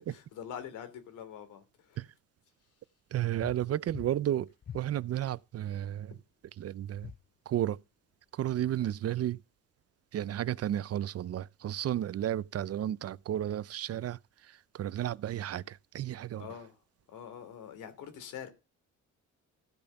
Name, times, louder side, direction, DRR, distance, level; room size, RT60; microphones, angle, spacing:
voice 1, 0.0-2.0 6.1-6.2 16.4-18.5, left 8 dB, 85° left, 3.2 m, -45 dB
voice 2, 3.1-4.5 4.7-6.1 6.6-7.1 7.5-7.8 8.3-9.4 10.1-16.5, right 11 dB, 55° right, 0.6 m, -33 dB
sound 1, 3.4-3.6 3.9-4.2 4.6-4.9 6.9-7.2, left 8 dB, 30° left, 0.5 m, -44 dB
15.0 x 5.3 x 7.0 m
cardioid pair, 90°, 30 cm